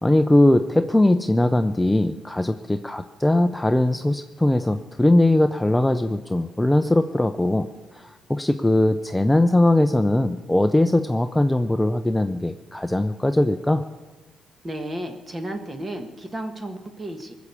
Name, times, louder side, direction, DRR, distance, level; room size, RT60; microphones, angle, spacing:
voice 1, 0.0-13.8, left 1 dB, 10° left, 9 dB, 0.5 m, -20 dB
voice 2, 14.6-17.3, right 1 dB, 25° right, 6 dB, 1.4 m, -33 dB
19.5 x 7.2 x 8.2 m, 1.2 s
cardioid pair, 90°, 0 cm